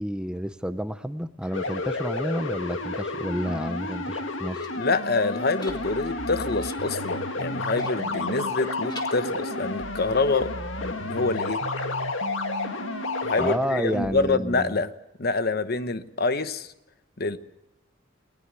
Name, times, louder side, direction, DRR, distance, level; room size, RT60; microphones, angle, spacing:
voice 1, 0.0-4.6 13.4-14.7, equal, 5° right, 11 dB, 0.7 m, -30 dB
sound 1, 1.5-13.6, left 3 dB, 70° left, 1.9 m, -31 dB
sound 2, 4.2-5.0 5.4-6.2 6.6-7.0 7.8-8.6 8.9-9.8, left 2 dB, 20° left, 2.1 m, -47 dB
voice 2, 4.8-10.5 10.8-11.6 13.2-14.9 15.2-16.7 17.2-17.4, left 3 dB, 50° left, 12 dB, 1.0 m, -26 dB
sound 3, 5.7-14.3, right 2 dB, 80° right, 1.0 m, -39 dB
19.5 x 19.0 x 8.2 m, 0.91 s
head